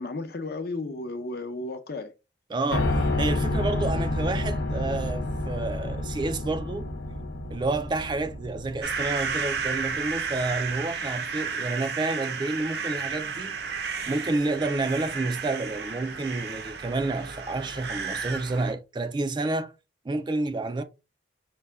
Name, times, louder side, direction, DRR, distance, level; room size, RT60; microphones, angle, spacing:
voice 1, 0.0-2.1, left 2 dB, 55° left, 0.7 m, -33 dB
voice 2, 2.5-6.9 7.5-19.7 20.0-20.8, right 2 dB, 25° right, 0.3 m, -30 dB
Piano, 2.7-10.7, left 1 dB, 90° left, 0.8 m, -30 dB
sound 1, 8.8-18.7, right 5 dB, 60° right, 0.7 m, -32 dB
5.3 x 2.2 x 3.4 m
head